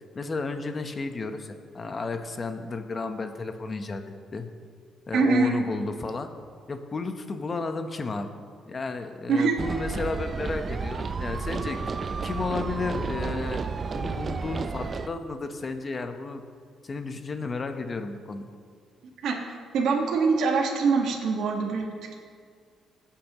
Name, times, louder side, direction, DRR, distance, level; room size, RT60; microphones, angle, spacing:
voice 1, 0.1-4.5 5.1-6.3 6.7-8.3 8.7-11.8 12.2-13.6 13.9-16.4 16.8-18.5, left 3 dB, 35° left, 7 dB, 1.1 m, -33 dB
voice 2, 5.1-5.6 9.3-9.6 19.2-19.4 19.7-22.2, right 4 dB, 80° right, 0 dB, 1.7 m, -24 dB
sound 1, 9.6-15.1, right 4 dB, 40° right, 0.5 m, -31 dB
19.5 x 8.6 x 3.1 m, 2.1 s
cardioid pair, 90°, 0 cm